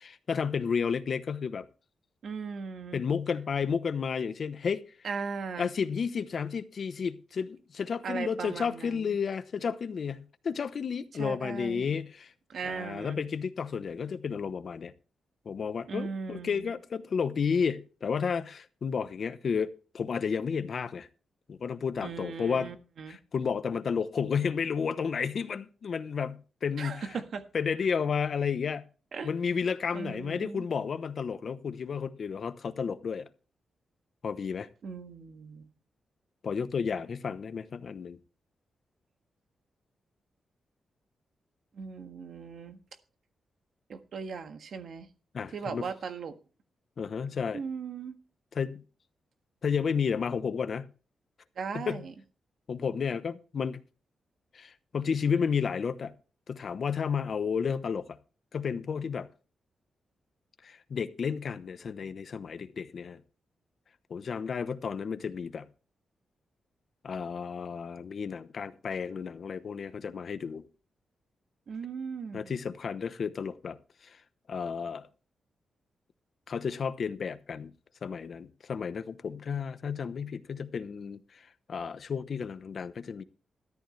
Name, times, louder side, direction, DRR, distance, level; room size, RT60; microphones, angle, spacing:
voice 1, 0.0-1.7 2.9-4.8 5.6-12.3 12.7-14.9 15.4-21.1 21.5-22.7 23.1-27.1 27.5-28.8 29.2-33.3 34.2-34.7 36.4-38.2 45.3-45.8 47.0-47.6 48.5-48.8 49.6-50.9 51.7-52.0 52.7-53.8 54.5-56.1 56.5-58.2 58.5-59.3 60.6-63.2 64.1-65.7 67.0-70.7 72.3-73.8 74.0-74.2 74.5-75.1 76.5-77.7 78.0-83.2, left 6 dB, 55° left, 0.9 m, -32 dB
voice 2, 2.2-3.0 5.0-5.7 8.0-9.2 11.1-11.9 12.5-13.2 15.9-16.7 22.0-23.2 26.8-27.4 29.1-29.3 29.9-30.7 34.8-35.7 41.7-42.8 43.9-45.1 45.5-46.4 47.5-48.1 51.5-52.1 71.7-72.5, right 5 dB, 65° right, 1.5 m, -38 dB
13.5 x 11.5 x 3.3 m
wide cardioid pair, 115°, 0 cm